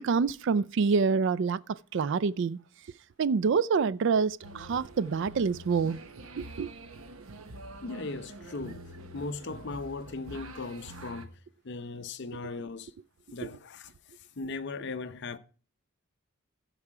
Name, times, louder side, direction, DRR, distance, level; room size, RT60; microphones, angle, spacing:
voice 1, 0.0-2.6 3.2-6.0 6.4-6.7 13.4-13.5, right 5 dB, 55° right, 0.3 m, -27 dB
sound 1, 4.4-11.3, right 2 dB, 70° right, 1.0 m, -46 dB
voice 2, 7.8-8.8 9.1-11.3 11.6-12.9 13.3-13.9 14.4-15.4, left 3 dB, 55° left, 0.6 m, -38 dB
14.5 x 4.8 x 4.8 m
head